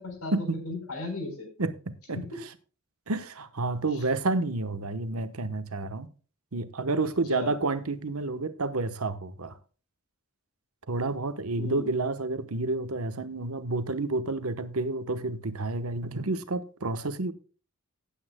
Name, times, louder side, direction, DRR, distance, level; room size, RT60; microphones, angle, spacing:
voice 1, 0.0-1.5 2.1-2.2 7.3-7.5 11.6-11.9, left 3 dB, 90° left, 4.2 m, -36 dB
voice 2, 1.6-2.2 3.1-6.1 6.5-9.6 10.9-17.3, right 3 dB, 80° right, 1.1 m, -30 dB
17.5 x 8.6 x 2.2 m
head